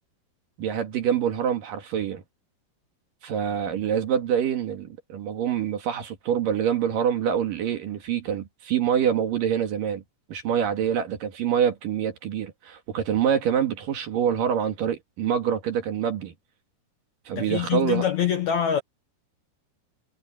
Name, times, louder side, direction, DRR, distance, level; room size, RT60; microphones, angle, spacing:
voice 1, 0.6-2.2 3.2-10.0 10.3-16.3 17.3-18.0, right 8 dB, 60° right, 3.1 m, -26 dB
voice 2, 17.3-18.8, left 9 dB, 85° left, 1.6 m, -25 dB
omnidirectional pair, 4.9 m